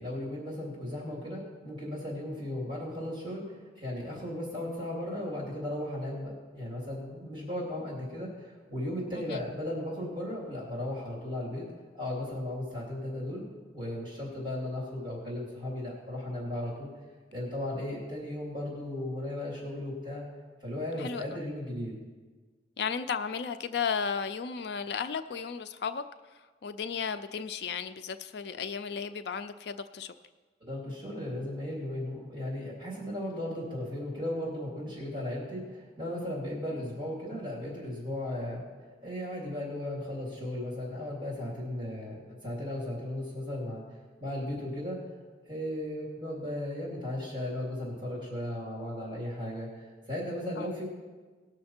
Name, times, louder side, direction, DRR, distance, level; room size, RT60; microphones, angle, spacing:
voice 1, 0.0-11.6 11.9-13.4 13.7-16.9 17.3-20.2 20.6-21.9 30.7-38.6 39.0-43.8 44.2-45.0 45.4-50.9, left 1 dB, 25° right, -5 dB, 3.0 m, -36 dB
voice 2, 21.0-21.4 22.8-26.0 26.6-30.1 50.6-50.7, left 6 dB, 60° left, 10 dB, 0.4 m, -34 dB
19.0 x 6.4 x 4.4 m, 1.4 s
head